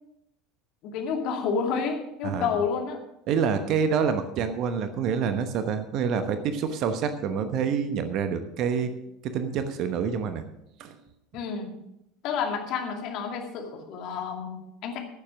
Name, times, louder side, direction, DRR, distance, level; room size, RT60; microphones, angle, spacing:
voice 1, 0.8-3.0 11.3-11.8 12.2-15.0, left 6 dB, 50° left, 3 dB, 2.3 m, -30 dB
voice 2, 3.3-8.9 9.2-10.4 10.8-11.0, right 6 dB, 50° right, 10 dB, 1.0 m, -27 dB
14.5 x 7.3 x 6.3 m, 0.85 s
figure-of-eight pair, 70°, 0 cm